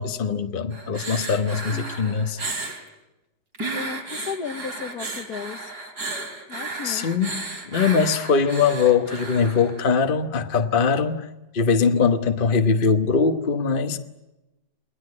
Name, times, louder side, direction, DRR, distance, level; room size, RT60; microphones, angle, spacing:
voice 1, 0.0-2.4 6.8-7.4 7.7-11.3 11.5-14.0, left 5 dB, 35° left, 8 dB, 1.2 m, -21 dB
sound 1, 0.7-2.8 3.5-9.9 10.9-11.0, right 2 dB, 70° right, 3.8 m, -34 dB
voice 2, 1.7-2.3 3.7-5.7 6.5-7.1, left 6 dB, 65° left, 9 dB, 1.7 m, -35 dB
29.0 x 20.0 x 9.7 m, 1.0 s
omnidirectional pair, 1.8 m